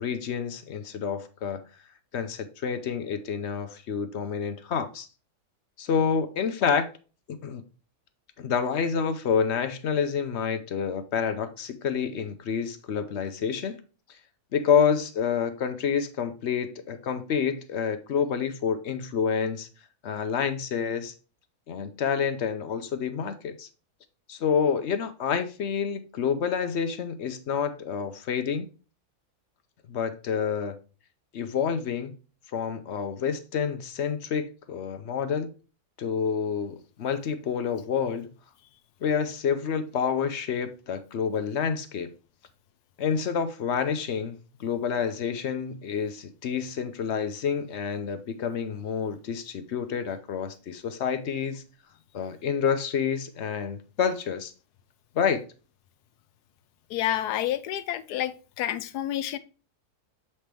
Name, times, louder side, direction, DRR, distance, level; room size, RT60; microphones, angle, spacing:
voice 1, 0.0-1.6 2.1-5.1 5.8-6.9 7.3-7.6 8.4-13.8 14.5-19.7 20.0-21.1 21.7-23.7 24.3-28.7 29.9-30.8 31.3-32.1 32.5-35.5 36.0-38.3 39.0-42.1 43.0-51.6 52.1-54.5 55.1-55.4, left 7 dB, 60° left, 0.8 m, -28 dB
voice 2, 56.9-59.4, left 12 dB, 90° left, 1.2 m, -29 dB
7.4 x 4.2 x 3.3 m
omnidirectional pair, 1.7 m